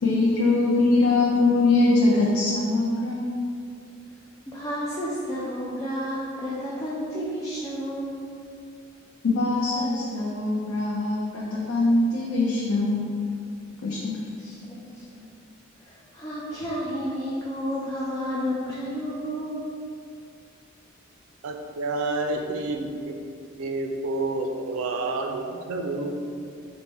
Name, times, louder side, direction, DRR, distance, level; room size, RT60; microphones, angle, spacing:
voice 1, 0.0-3.4 9.2-13.1 13.8-14.1, left 2 dB, 85° left, -5 dB, 0.5 m, -22 dB
voice 2, 4.5-8.2 14.4-15.2 15.8-19.7, equal, 15° left, -7 dB, 0.4 m, -31 dB
voice 3, 21.4-23.2 23.6-26.1, right 2 dB, 85° right, 4 dB, 0.4 m, -29 dB
4.0 x 2.1 x 3.3 m, 2.4 s
head